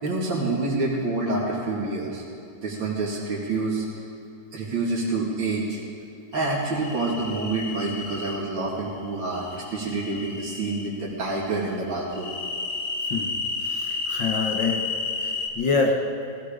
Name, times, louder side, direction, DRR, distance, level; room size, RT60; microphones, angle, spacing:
voice 1, 0.0-2.2 2.6-3.8 4.5-5.8 6.3-9.4 9.7-12.3, right 3 dB, 75° right, -6 dB, 2.9 m, -27 dB
sound 1, 6.3-8.4 9.3-10.9 12.1-15.5, left 3 dB, 50° left, 1.7 m, -32 dB
voice 2, 13.6-14.9 15.2-16.0, left 4 dB, 70° left, 2 dB, 2.0 m, -26 dB
19.0 x 15.0 x 5.1 m, 2.6 s
omnidirectional pair, 2.1 m